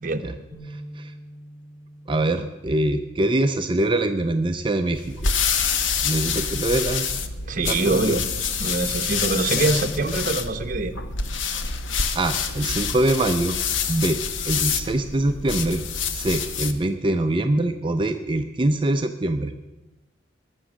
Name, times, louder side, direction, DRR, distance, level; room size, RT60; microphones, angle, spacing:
sound 1, 0.5-6.8, right 1 dB, 25° left, 2.5 m, -47 dB
voice 1, 0.7-1.1 2.1-5.3 6.0-7.2 7.6-8.2 9.5-9.6 12.1-13.6 13.9-15.8 16.1-19.5, right 1 dB, 25° right, 6 dB, 0.5 m, -24 dB
sound 2, 4.9-16.8, left 6 dB, 85° left, 0.9 m, -27 dB
voice 2, 7.5-8.2 8.6-10.9, right 3 dB, 45° right, 7 dB, 1.0 m, -24 dB
20.5 x 7.1 x 6.3 m, 1.1 s
head